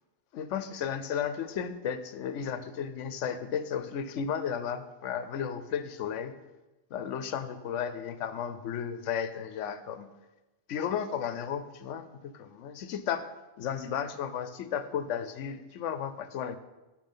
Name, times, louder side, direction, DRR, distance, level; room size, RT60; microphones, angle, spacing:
voice 1, 0.3-6.3 6.9-10.1 10.7-16.6, left 8 dB, 80° left, 12 dB, 1.0 m, -34 dB
10.5 x 4.9 x 5.5 m, 1.1 s
omnidirectional pair, 1.3 m